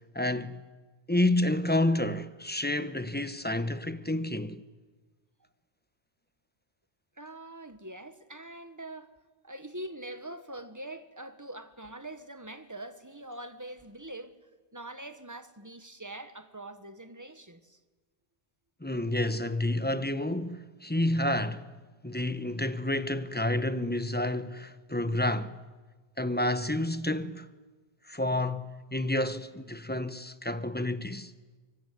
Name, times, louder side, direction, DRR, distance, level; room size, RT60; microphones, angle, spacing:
voice 1, 0.1-0.6 1.1-4.6 18.8-21.7 22.0-25.5 26.2-27.5 28.1-31.3, left 1 dB, 10° left, 0.9 m, -29 dB
voice 2, 7.2-9.1 9.4-14.3 14.7-17.8, right 1 dB, 15° right, 1.4 m, -43 dB
24.5 x 24.0 x 9.4 m
omnidirectional pair, 1.1 m